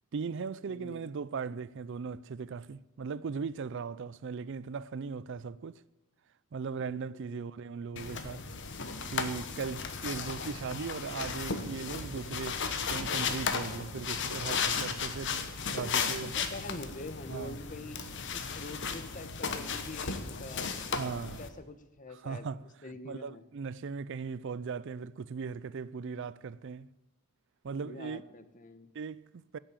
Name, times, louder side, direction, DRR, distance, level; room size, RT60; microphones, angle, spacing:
voice 1, 0.1-5.8 6.5-8.5 9.1-16.4 17.3-17.6 21.0-21.4 22.1-22.6 23.0-26.9 27.6-28.2 28.9-29.6, right 5 dB, 55° right, 0.4 m, -38 dB
voice 2, 0.7-1.1 6.8-7.0 7.3-7.5 15.8-18.0 18.3-20.7 21.4-22.5 22.8-23.4 27.7-28.9, left 2 dB, 35° left, 1.1 m, -45 dB
sound 1, 8.0-21.5, left 5 dB, 55° left, 1.2 m, -35 dB
16.5 x 7.5 x 8.8 m
head